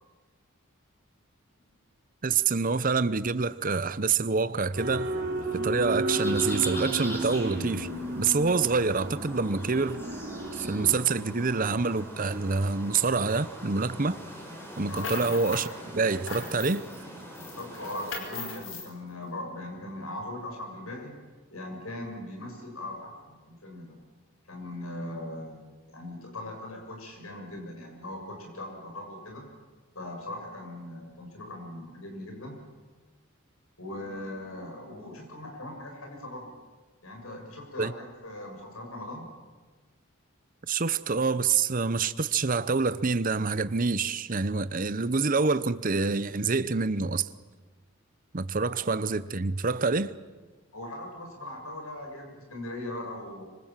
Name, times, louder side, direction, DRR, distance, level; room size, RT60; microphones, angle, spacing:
voice 1, 2.2-5.1 5.5-7.9 8.1-10.0 10.5-14.2 14.8-16.8 37.8-37.9 40.7-47.3 48.3-50.2, right 4 dB, 40° right, 0.8 m, -26 dB
sound 1, 4.7-11.0, right 2 dB, 55° right, 4.4 m, -33 dB
sound 2, 6.1-18.1, equal, 10° left, 4.7 m, -42 dB
sound 3, 14.7-15.7 16.1-17.0 17.3-18.9, left 3 dB, 65° left, 5.2 m, -38 dB
voice 2, 17.6-21.1 21.5-24.0 24.5-29.4 29.9-32.6 33.8-36.5 37.0-39.2 50.7-53.4, left 1 dB, 85° left, 7.3 m, -40 dB
25.5 x 25.5 x 7.5 m
head